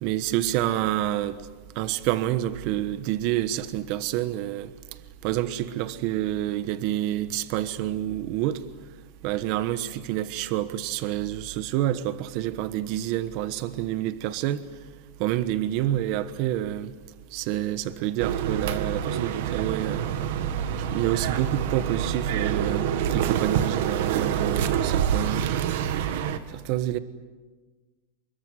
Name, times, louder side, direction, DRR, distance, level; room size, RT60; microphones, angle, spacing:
voice 1, 0.0-1.3 1.7-4.7 5.2-8.6 9.2-14.6 15.2-16.9 17.3-20.1 20.9-25.6 26.5-27.0, right 13 dB, 50° right, 13 dB, 1.3 m, -28 dB
sound 1, 18.2-26.4, right 9 dB, 70° right, 1.9 m, -27 dB
25.0 x 21.5 x 9.7 m, 1.3 s
supercardioid pair, 145°, 0 cm